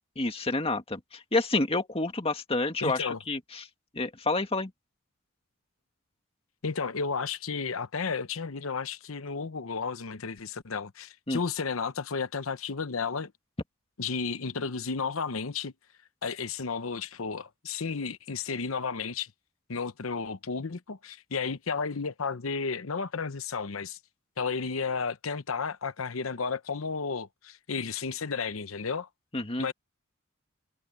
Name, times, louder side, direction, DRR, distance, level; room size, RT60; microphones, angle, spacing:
voice 1, 0.2-3.7 3.9-4.7 11.3-11.4 29.3-29.7, left 2 dB, 30° left, 2.0 m, -29 dB
voice 2, 2.8-3.2 6.6-13.3 14.0-15.7 16.2-19.3 19.7-24.0 24.4-29.1 29.6-29.7, left 5 dB, 80° left, 0.8 m, -33 dB
head